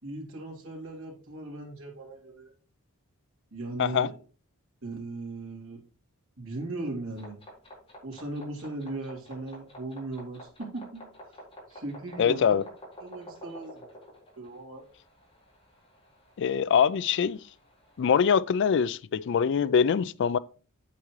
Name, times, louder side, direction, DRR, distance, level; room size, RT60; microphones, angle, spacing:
voice 1, 0.0-2.5 3.5-4.2 4.8-5.8 6.4-7.4 8.0-11.0 11.7-12.6 13.0-13.8 14.4-14.8, right 2 dB, 65° right, 3.1 m, -38 dB
sound 1, 7.1-18.3, equal, 25° left, 4.4 m, -50 dB
voice 2, 12.2-12.6 16.4-17.4 18.0-20.4, left 7 dB, 55° left, 0.3 m, -23 dB
8.4 x 8.3 x 3.1 m
head